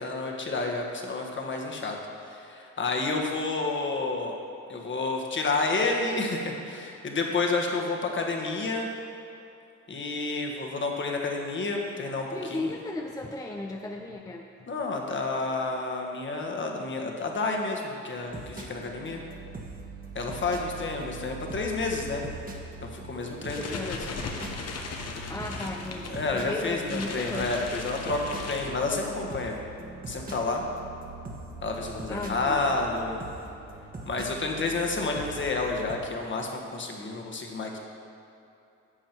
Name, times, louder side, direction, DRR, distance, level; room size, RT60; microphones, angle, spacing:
voice 1, 0.0-2.0 2.3-4.3 4.7-8.9 9.9-12.7 14.7-19.2 20.1-22.2 22.9-24.0 26.1-29.6 30.1-30.6 31.6-33.2 34.0-37.8, left 3 dB, 40° left, 1 dB, 1.5 m, -30 dB
voice 2, 12.3-14.5 23.0-23.1 23.5-24.0 25.3-27.5 32.1-33.0, left 2 dB, 10° left, 2 dB, 0.6 m, -36 dB
sound 1, 18.3-36.0, right 3 dB, 30° right, 1.5 m, -42 dB
sound 2, 23.3-29.2, left 4 dB, 55° left, 1.1 m, -38 dB
11.0 x 7.3 x 4.6 m, 2.8 s
cardioid pair, 90°, 30 cm